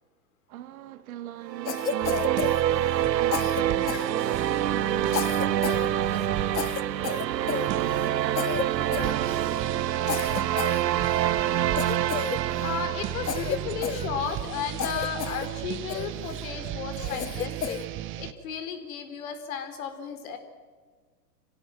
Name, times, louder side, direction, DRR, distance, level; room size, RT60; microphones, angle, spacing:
voice 1, 0.5-6.9 7.2-9.6, right 13 dB, 55° right, 1.9 m, -41 dB
sound 1, 1.5-13.9, right 11 dB, 85° right, 0.8 m, -27 dB
Cough, 1.7-3.1 3.3-4.6 5.1-5.9 6.1-6.3 6.5-8.1 8.4-8.7 8.9-9.6 10.1-11.3 11.8-12.8 13.3-14.5 14.8-15.5 15.9-16.4 17.0-17.9, left 9 dB, 85° left, 1.3 m, -32 dB
sound 2, 2.0-18.3, right 13 dB, 25° right, 0.9 m, -35 dB
voice 2, 12.6-17.8 18.2-20.4, left 7 dB, 55° left, 4.0 m, -34 dB
26.0 x 16.5 x 7.7 m
hypercardioid pair, 120°, 49 cm